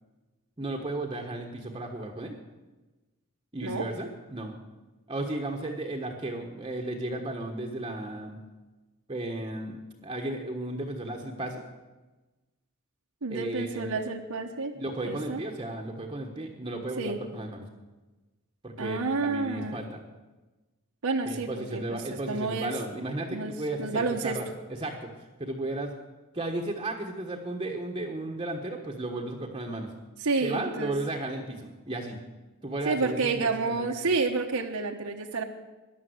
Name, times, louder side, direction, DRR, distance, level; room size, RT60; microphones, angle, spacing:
voice 1, 0.6-2.4 3.5-4.5 5.1-8.4 9.1-11.6 13.3-14.0 14.8-17.7 18.6-20.0 21.2-24.4 24.8-25.1 25.4-25.9 26.3-29.9 30.4-32.2 32.6-33.7, right 2 dB, 20° right, 1 dB, 1.2 m, -34 dB
voice 2, 13.2-14.8 15.0-15.4 17.0-17.2 18.8-19.8 21.0-22.7 23.3-23.5 23.8-24.4 30.2-30.9 32.8-35.4, right 3 dB, 75° right, 2 dB, 1.2 m, -29 dB
14.5 x 11.0 x 7.9 m, 1.2 s
head